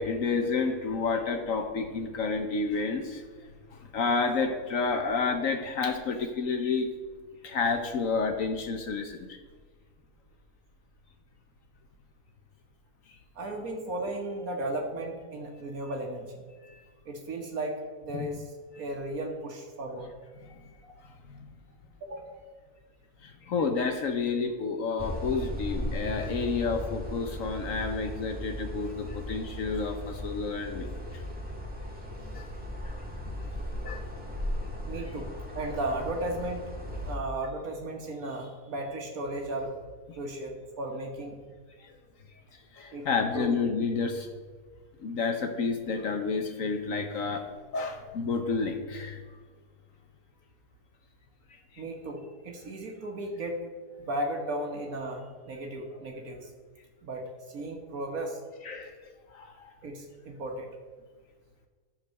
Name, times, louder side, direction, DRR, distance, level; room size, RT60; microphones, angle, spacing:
voice 1, 0.0-3.2 3.7-6.9 7.4-9.4 16.7-16.8 18.1-18.3 20.4-20.6 21.3-21.5 23.2-30.9 32.3-32.5 33.8-34.0 40.1-40.2 41.8-41.9 42.7-44.3 45.0-47.5 47.7-49.2 51.7-51.8 58.6-58.9 59.3-59.7, left 4 dB, 65° left, 5 dB, 1.1 m, -30 dB
voice 2, 13.3-16.2 17.0-20.1 20.8-21.0 22.0-22.4 34.9-36.6 36.9-39.7 40.2-41.4 42.9-43.1 43.3-43.6 51.8-53.7 54.0-56.5 57.0-58.4 59.8-60.7, right 1 dB, 65° right, 2 dB, 1.6 m, -35 dB
sound 1, 25.0-37.2, left 1 dB, 5° right, 1.5 m, -37 dB
13.5 x 4.6 x 6.4 m, 1.5 s
omnidirectional pair, 1.6 m